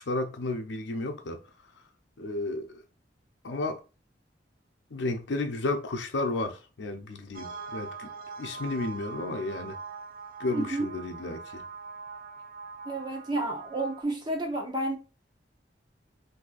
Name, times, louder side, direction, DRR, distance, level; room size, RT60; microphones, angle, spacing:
voice 1, 0.0-1.4 2.2-2.8 3.4-3.8 4.9-8.1 8.4-9.7 10.4-11.6, left 2 dB, 80° left, 0.6 m, -32 dB
sound 1, 7.3-14.0, right 5 dB, 50° right, 0.4 m, -42 dB
voice 2, 10.5-10.9 12.8-15.0, right 2 dB, 25° right, 0.8 m, -30 dB
4.1 x 2.7 x 2.4 m
head